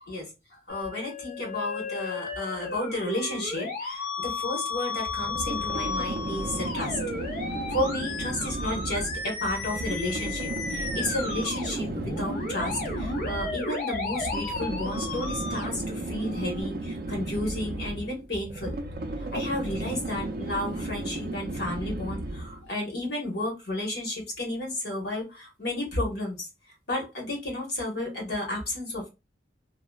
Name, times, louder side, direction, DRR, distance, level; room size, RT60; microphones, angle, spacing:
voice 1, 0.7-7.0 7.7-18.8 19.3-26.5 26.9-29.1, left 1 dB, 70° left, 0 dB, 1.2 m, -32 dB
Musical instrument, 0.7-16.6, left 3 dB, 55° left, 0.6 m, -34 dB
sound 1, 5.1-22.7, right 2 dB, 55° right, 0.4 m, -34 dB
2.8 x 2.0 x 2.3 m, 0.26 s
head